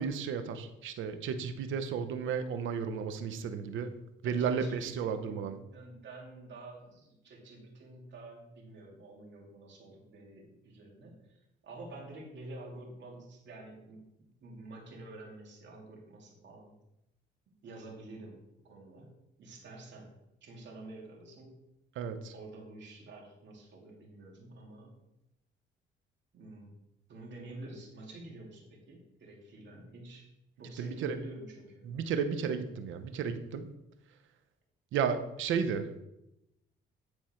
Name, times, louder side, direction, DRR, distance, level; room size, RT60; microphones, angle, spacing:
voice 1, 0.0-3.9 4.2-5.6 22.0-22.3 30.8-31.2 31.8-33.7 34.9-35.9, right 6 dB, 80° right, 9 dB, 0.8 m, -33 dB
voice 2, 4.2-11.2 11.6-14.1 14.4-16.7 17.5-18.4 18.7-19.1 19.4-20.1 20.4-21.6 22.3-24.9 26.3-26.8 27.1-30.3 30.6-31.9, right 2 dB, 65° right, -1 dB, 2.5 m, -48 dB
9.8 x 4.4 x 4.4 m, 0.87 s
cardioid pair, 90°, 20 cm